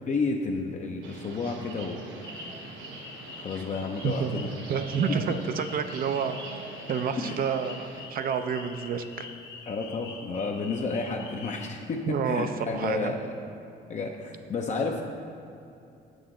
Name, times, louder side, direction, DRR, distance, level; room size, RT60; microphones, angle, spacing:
voice 1, 0.1-2.0 3.4-4.5 7.2-7.4 9.7-12.0 12.2-13.2 13.9-15.0, left 4 dB, 40° left, 1 dB, 0.5 m, -31 dB
sound 1, 1.0-8.1, right 3 dB, 85° right, 0.9 m, -43 dB
sound 2, 2.2-11.7, left 5 dB, 80° left, 0.8 m, -46 dB
voice 2, 4.0-6.4 6.9-9.3 12.1-13.1, right 6 dB, 50° right, 9 dB, 0.5 m, -29 dB
6.8 x 6.3 x 3.7 m, 2.6 s
cardioid pair, 95°, 18 cm